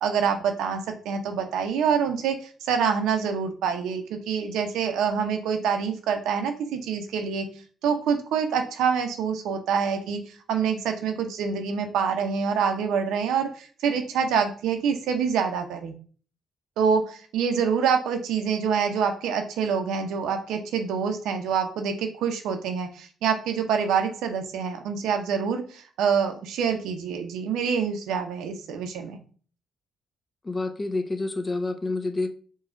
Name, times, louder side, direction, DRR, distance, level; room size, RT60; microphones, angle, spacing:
voice 1, 0.0-2.4 2.6-7.5 7.8-10.2 10.5-15.9 16.8-29.2, right 6 dB, 90° right, 5 dB, 0.8 m, -26 dB
voice 2, 30.4-32.3, left 2 dB, 25° left, 7 dB, 0.6 m, -28 dB
4.7 x 2.4 x 4.4 m, 0.42 s
cardioid pair, 100°, 0 cm